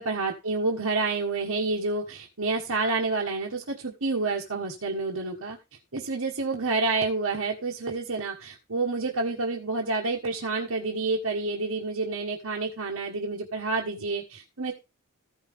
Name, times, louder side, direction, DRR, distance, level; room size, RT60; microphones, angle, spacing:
voice 1, 0.0-5.6 5.9-14.7, right 3 dB, 70° right, -2 dB, 1.5 m, -29 dB
15.0 x 5.7 x 3.6 m, 0.26 s
head